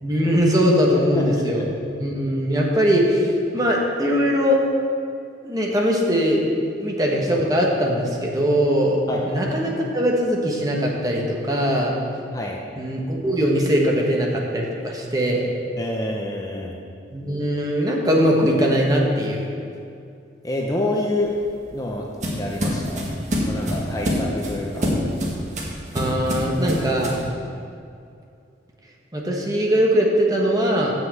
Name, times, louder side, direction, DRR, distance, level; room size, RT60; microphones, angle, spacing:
voice 1, 0.0-4.6 5.4-6.4 6.8-9.0 9.2-12.0 12.8-15.5 17.1-19.5 25.9-27.2 29.1-30.9, equal, 20° right, -1 dB, 1.2 m, -21 dB
voice 2, 9.1-9.4 12.3-12.6 15.8-16.8 20.4-21.3 21.7-23.1 23.4-24.9, left 1 dB, 20° left, -1 dB, 0.7 m, -27 dB
sound 1, 21.2-27.3, equal, 40° right, 1.6 m, -26 dB
7.5 x 6.1 x 7.5 m, 2.4 s
head